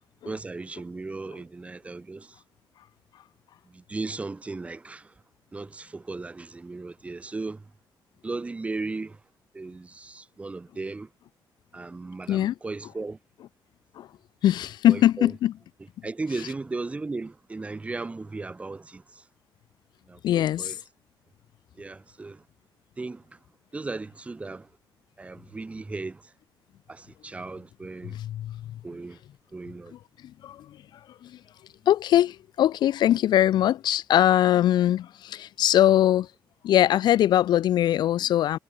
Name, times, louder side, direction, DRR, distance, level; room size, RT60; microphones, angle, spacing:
voice 1, 0.2-2.4 3.7-5.1 5.5-7.7 8.2-9.2 9.5-11.1 11.7-13.2 14.9-15.3 16.0-19.2 20.1-20.8 21.8-22.4 23.0-23.4 23.7-24.7 25.2-26.3 26.9-28.2 28.8-29.2 29.5-30.0, right 3 dB, 15° right, 1.0 m, -36 dB
voice 2, 14.4-15.5 20.2-20.8 28.0-28.8 30.4-30.7 31.2-31.4 31.9-36.3 36.6-38.6, left 12 dB, 60° left, 0.4 m, -22 dB
cardioid pair, 180°, 8 cm